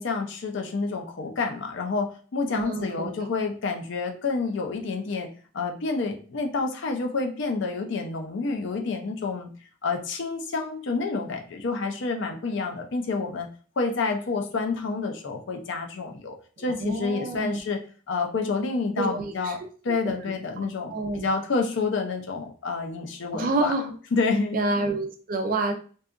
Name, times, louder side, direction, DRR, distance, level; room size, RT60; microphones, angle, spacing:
voice 1, 0.0-5.3 5.5-9.5 9.8-13.5 13.8-17.8 18.1-19.6 19.8-23.7 24.1-24.6, left 4 dB, 55° left, 4 dB, 0.4 m, -28 dB
voice 2, 2.5-3.3 16.6-17.6 19.0-20.3 20.9-21.3 23.4-23.9 24.5-25.7, right 2 dB, 40° right, 5 dB, 0.3 m, -29 dB
2.7 x 2.3 x 2.4 m, 0.40 s
head